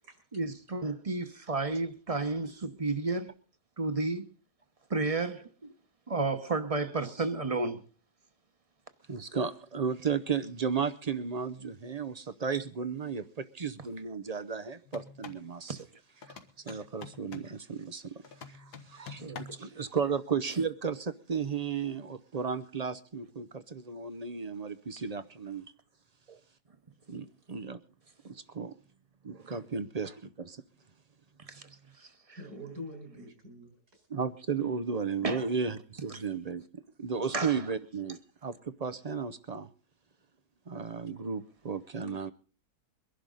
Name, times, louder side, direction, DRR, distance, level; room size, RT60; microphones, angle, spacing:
voice 1, 0.3-3.3 3.8-4.3 4.9-5.7 6.1-7.8 15.8-15.9 19.2-19.4 31.5-31.7 32.0-32.4 35.2-35.4 36.1-36.2 37.3-37.6, right 3 dB, 25° right, 1.0 m, -32 dB
voice 2, 9.1-15.8 16.3-18.1 18.5-25.7 26.3-26.4 27.1-27.8 28.2-28.7 29.2-30.6 34.1-39.7 40.7-42.3, right 6 dB, 45° right, 0.5 m, -34 dB
sound 1, 14.9-15.5 16.2-17.6 18.2-19.7, left 5 dB, 90° left, 1.9 m, -46 dB
voice 3, 32.4-34.1, equal, 75° right, 5.3 m, -45 dB
23.0 x 11.5 x 3.9 m
omnidirectional pair, 1.6 m